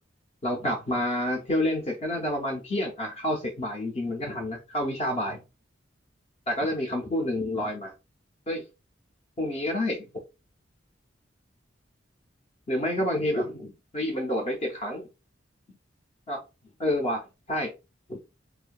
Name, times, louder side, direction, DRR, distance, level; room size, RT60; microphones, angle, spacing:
voice 1, 0.4-5.4 6.5-7.9 8.5-8.6 9.4-10.1 12.7-15.1 16.3-16.4 16.8-17.7 18.1-18.2, left 1 dB, 35° left, 0.5 m, -29 dB
2.5 x 2.2 x 2.2 m
head